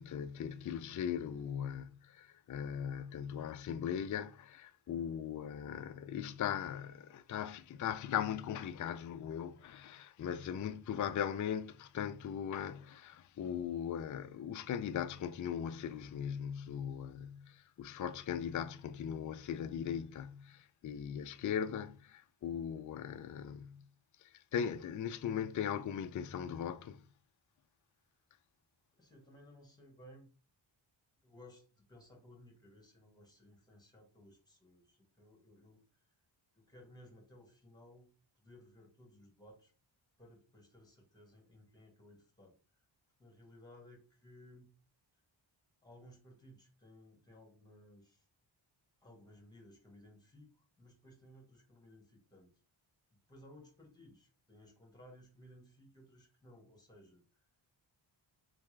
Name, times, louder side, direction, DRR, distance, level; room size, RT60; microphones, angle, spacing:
voice 1, 0.0-23.8 24.2-27.0, left 8 dB, 40° left, 0.4 m, -39 dB
voice 2, 28.9-30.3 31.2-36.1 36.5-39.7 40.2-42.9 43.2-44.7 45.1-45.2 45.8-48.3 49.0-52.6 53.3-57.5, left 1 dB, 10° left, 1.7 m, -59 dB
4.1 x 3.5 x 3.2 m
wide cardioid pair, 90°, 48 cm